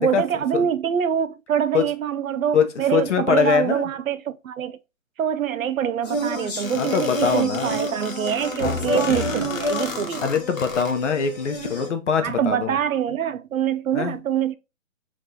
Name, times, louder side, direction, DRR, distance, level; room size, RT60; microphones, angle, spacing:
voice 1, 0.0-4.8 5.2-10.2 12.2-14.6, right 9 dB, 90° right, 0.6 m, -25 dB
voice 2, 2.5-3.9 6.7-7.7 8.6-9.2 10.2-12.8 13.9-14.2, left 6 dB, 60° left, 0.8 m, -23 dB
sound 1, 6.0-11.9, left 1 dB, 30° left, 0.9 m, -29 dB
sound 2, 6.6-10.9, left 4 dB, 80° left, 1.1 m, -35 dB
5.8 x 2.6 x 2.8 m
hypercardioid pair, 165°, 40 cm